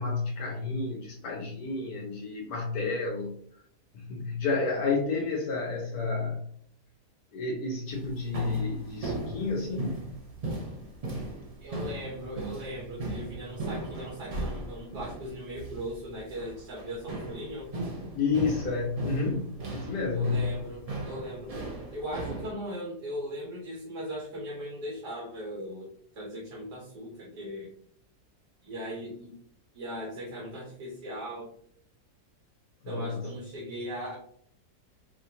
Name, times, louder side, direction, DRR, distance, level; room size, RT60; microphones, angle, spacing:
voice 1, 0.0-3.3 3.9-6.4 7.3-10.0 18.1-20.4 32.8-33.2, left 4 dB, 70° left, -1 dB, 1.2 m, -30 dB
Door opening stairs walking, 7.9-22.5, right 2 dB, 70° right, 0.3 m, -38 dB
voice 2, 11.6-17.7 20.1-21.5 21.9-27.7 28.6-29.3 29.7-31.5 32.9-34.1, equal, 85° right, -4 dB, 1.7 m, -38 dB
4.7 x 2.5 x 2.8 m, 0.63 s
omnidirectional pair, 1.7 m